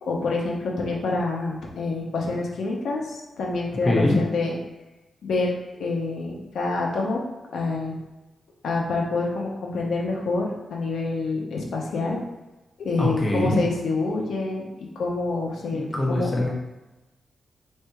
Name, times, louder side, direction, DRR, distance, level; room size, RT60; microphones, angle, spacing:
voice 1, 0.0-4.6 5.2-5.5 5.8-7.2 7.5-8.0 8.6-12.2 12.8-16.3, left 3 dB, 85° left, -1 dB, 0.8 m, -27 dB
voice 2, 3.8-4.2 13.0-13.6 15.7-16.5, left 1 dB, 15° left, -3 dB, 0.9 m, -23 dB
3.3 x 2.7 x 4.5 m, 1.1 s
wide cardioid pair, 155°, 0 cm